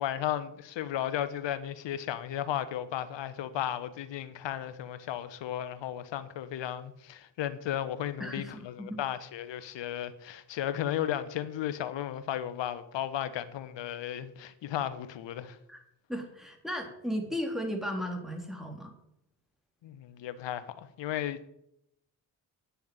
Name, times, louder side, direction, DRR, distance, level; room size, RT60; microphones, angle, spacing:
voice 1, 0.0-15.6 19.8-21.5, left 11 dB, 70° left, 1.3 m, -34 dB
voice 2, 8.2-9.0 15.7-15.8 16.1-18.9, equal, ahead, 3.7 m, -35 dB
9.7 x 7.1 x 8.9 m
hypercardioid pair, 45°, 46 cm